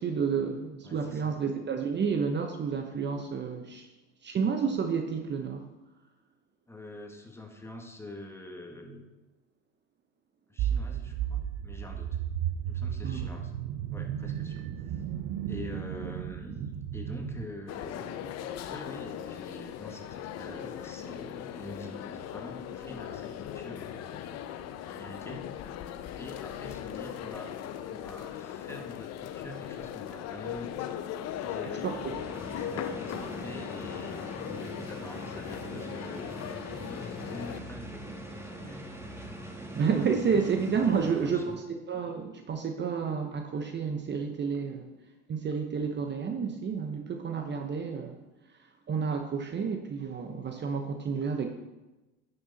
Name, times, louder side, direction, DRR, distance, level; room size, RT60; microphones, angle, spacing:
voice 1, 0.0-3.9 4.2-5.7 13.0-13.3 31.6-32.2 39.8-44.9 45.3-48.2 48.9-51.5, right 6 dB, 35° right, 5 dB, 1.0 m, -30 dB
voice 2, 0.8-1.4 6.7-9.1 10.5-12.2 12.6-13.5 13.9-15.0 15.5-24.2 24.5-25.4 26.2-27.5 27.9-30.8 31.2-31.9 32.7-34.2 34.6-36.3 36.7-39.3 39.7-40.3 40.8-41.6, left 2 dB, 10° left, 2 dB, 1.7 m, -45 dB
sound 1, 10.6-17.5, right 10 dB, 55° right, 0.8 m, -34 dB
sound 2, 17.7-37.6, left 10 dB, 55° left, 0.8 m, -39 dB
sound 3, 31.7-41.6, right 1 dB, 10° right, 1.7 m, -43 dB
10.0 x 6.9 x 4.1 m, 1.1 s
hypercardioid pair, 80°, 32 cm